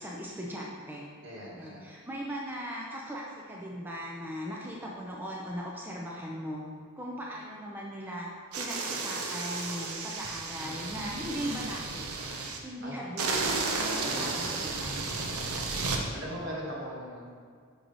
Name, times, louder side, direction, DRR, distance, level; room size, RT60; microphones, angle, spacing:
voice 1, 0.0-1.0 1.5-6.6 7.0-8.3 8.6-12.2 12.6-15.1, equal, 10° right, -3 dB, 0.5 m, -38 dB
voice 2, 1.2-1.9 12.8-13.0 13.3-13.5 13.9-14.3 15.1-15.4 16.1-17.3, equal, 55° right, -4 dB, 1.5 m, -40 dB
sound 1, 8.5-12.6 13.2-16.0, right 3 dB, 80° right, 0.7 m, -33 dB
6.1 x 4.7 x 3.9 m, 2.1 s
head